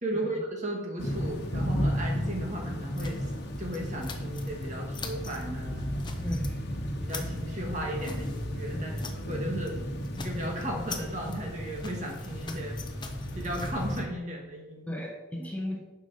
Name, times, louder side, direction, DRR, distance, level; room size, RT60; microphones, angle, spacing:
voice 1, 0.0-3.3 3.6-5.9 7.0-8.9 9.3-9.7 10.2-12.8 13.3-14.9 15.4-15.5, right 1 dB, 40° right, 0 dB, 2.0 m, -35 dB
sound 1, 1.0-14.0, equal, 55° left, 1.3 m, -34 dB
sound 2, 3.0-4.7 4.9-5.4 5.8-6.5 6.9-9.4 9.6-9.8 10.0-14.0, left 5 dB, 25° left, 0.9 m, -44 dB
voice 2, 6.2-6.6 8.7-9.0 14.9-15.8, left 1 dB, 10° left, -2 dB, 1.3 m, -36 dB
11.0 x 5.7 x 5.0 m, 1.1 s
head